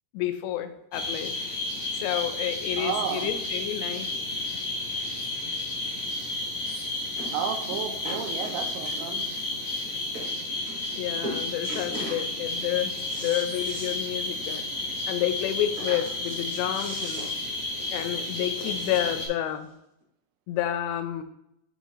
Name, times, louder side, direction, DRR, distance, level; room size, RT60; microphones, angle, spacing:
voice 1, 0.1-1.3 2.0-4.1 10.9-12.9 13.2-14.7 15.1-17.3 17.9-19.7 20.5-21.2, left 12 dB, 85° left, 8 dB, 2.5 m, -30 dB
sound 1, 0.9-19.3, left 2 dB, 45° left, 0.6 m, -32 dB
voice 2, 2.8-3.3 7.3-9.2, right 9 dB, 85° right, 7 dB, 3.3 m, -32 dB
sound 2, 6.4-6.5 7.2-7.4 7.7-9.3 9.8-9.9 10.1-10.3 10.7-11.0 11.2-12.2 12.6-14.0 14.3-14.4 14.7-14.8 15.7-19.2 20.0-20.1, equal, 45° right, 1.9 m, -40 dB
11.0 x 3.9 x 3.1 m, 0.80 s
omnidirectional pair, 5.7 m